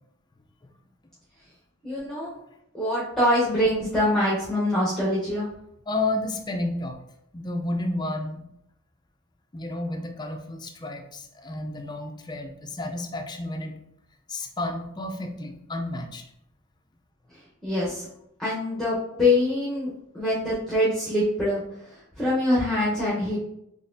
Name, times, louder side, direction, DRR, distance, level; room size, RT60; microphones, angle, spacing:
voice 1, 1.8-2.3 2.7-5.5 17.3-18.1 18.4-23.4, left 1 dB, ahead, -9 dB, 0.8 m, -24 dB
voice 2, 5.9-7.0 7.3-8.4 9.5-13.7 14.3-16.2, left 2 dB, 20° left, 3 dB, 0.4 m, -31 dB
4.1 x 3.2 x 2.6 m, 0.80 s
head